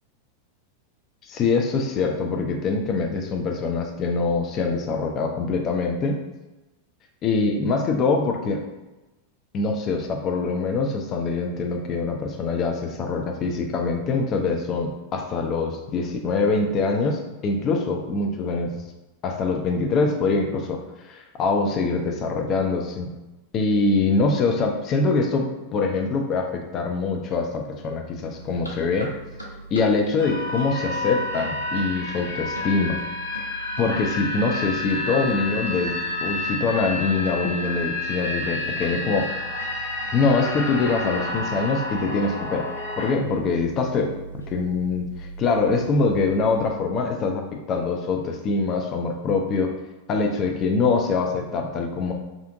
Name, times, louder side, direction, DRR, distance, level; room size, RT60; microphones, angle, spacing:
voice 1, 1.2-6.2 7.2-8.6 9.5-18.8 19.2-20.8 21.1-23.1 23.5-29.1 29.7-33.0 33.8-39.3 40.1-42.7 43.0-44.1 44.5-49.7 50.1-52.1, left 4 dB, 30° left, 3 dB, 0.3 m, -24 dB
sound 1, 28.4-46.7, right 3 dB, 90° right, 0.4 m, -41 dB
sound 2, 30.2-43.1, left 2 dB, 65° left, 0.9 m, -30 dB
2.5 x 2.4 x 2.5 m, 1.1 s
figure-of-eight pair, 90°, 0 cm